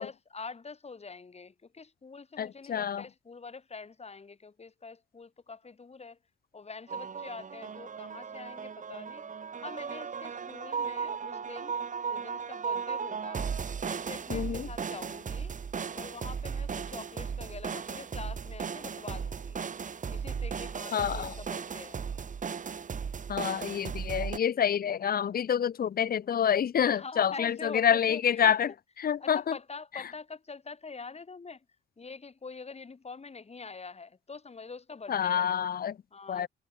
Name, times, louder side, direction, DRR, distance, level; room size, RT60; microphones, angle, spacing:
voice 1, 0.0-6.2 6.5-9.2 9.6-11.8 12.1-13.5 13.8-15.6 15.9-19.6 20.1-22.1 26.9-28.5 29.2-31.6 32.0-35.5 36.1-36.5, left 4 dB, 30° left, 3.2 m, -45 dB
voice 2, 2.4-3.0 14.3-14.7 20.9-21.3 23.3-28.7 29.0-29.4 35.1-36.0 36.3-36.5, left 8 dB, 50° left, 0.9 m, -27 dB
sound 1, 6.9-24.4, right 6 dB, 40° right, 1.4 m, -36 dB
supercardioid pair, 65°, 20 cm